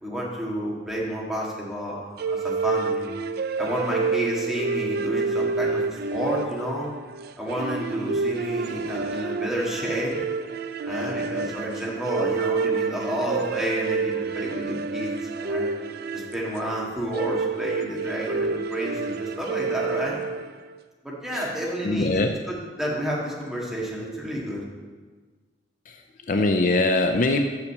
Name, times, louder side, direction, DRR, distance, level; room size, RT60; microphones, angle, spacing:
voice 1, 0.0-3.1 3.6-6.9 7.4-10.2 10.9-15.7 16.1-20.2 21.0-22.2 22.5-24.6, right 1 dB, 5° right, -5 dB, 1.8 m, -30 dB
sound 1, 2.2-20.7, right 4 dB, 60° right, 0.4 m, -29 dB
voice 2, 21.8-22.3 25.9-27.5, left 2 dB, 45° left, 5 dB, 0.4 m, -22 dB
6.6 x 5.7 x 6.6 m, 1.4 s
head